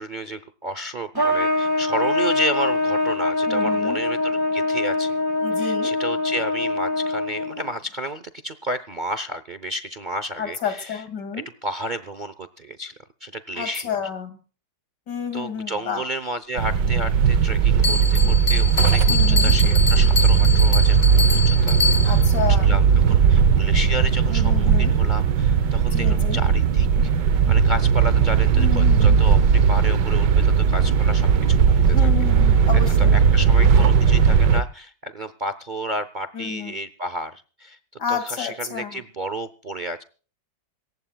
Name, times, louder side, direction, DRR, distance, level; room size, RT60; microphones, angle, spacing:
voice 1, 0.0-5.1 5.6-11.0 11.3-12.9 13.2-13.9 15.3-22.2 22.6-22.8 23.1-27.1 27.5-32.1 32.7-37.8 38.1-40.0, equal, 40° right, 12 dB, 0.7 m, -32 dB
Trumpet, 1.1-7.7, left 2 dB, 15° right, 1.9 m, -23 dB
voice 2, 3.5-4.0 5.4-5.9 10.4-11.4 13.6-14.4 15.1-16.0 19.1-19.5 22.0-22.7 24.3-24.9 25.9-26.4 28.6-29.2 31.9-33.2 36.3-36.8 38.0-39.0, left 7 dB, 75° left, 9 dB, 3.1 m, -30 dB
sound 1, 16.6-34.6, right 6 dB, 80° right, 1.6 m, -17 dB
Bell, 17.8-22.4, left 5 dB, 45° left, 0.6 m, -26 dB
26.5 x 15.0 x 2.3 m, 0.38 s
omnidirectional pair, 1.8 m